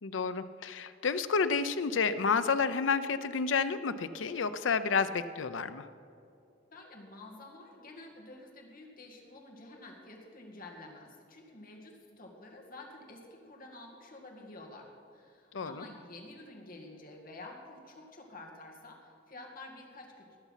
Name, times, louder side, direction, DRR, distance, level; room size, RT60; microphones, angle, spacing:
voice 1, 0.0-5.9 15.5-15.8, left 5 dB, 85° left, 12 dB, 0.6 m, -30 dB
voice 2, 6.7-20.3, left 2 dB, 50° left, 0 dB, 2.2 m, -50 dB
20.0 x 7.2 x 5.7 m, 2.6 s
head